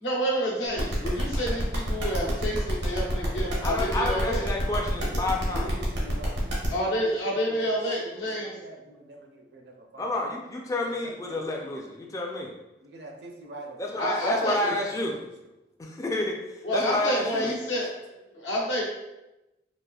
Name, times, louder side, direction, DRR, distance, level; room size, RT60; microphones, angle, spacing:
voice 1, 0.0-4.4 6.7-8.6 14.0-14.7 16.6-17.9 18.3-18.8, equal, 90° left, -5 dB, 1.0 m, -28 dB
sound 1, 0.8-6.7, equal, 85° right, 1.0 m, -31 dB
voice 2, 3.1-3.5 5.0-7.6 8.0-10.1 11.0-11.7 12.3-12.4 12.8-13.8 14.3-15.5 17.6-18.0 18.3-18.5, right 1 dB, 65° right, 1 dB, 0.6 m, -45 dB
voice 3, 3.6-5.7 10.0-12.5 13.8-15.2 15.8-16.3 16.7-17.5, left 2 dB, 20° left, 0 dB, 0.3 m, -29 dB
4.0 x 2.4 x 2.3 m, 0.97 s
head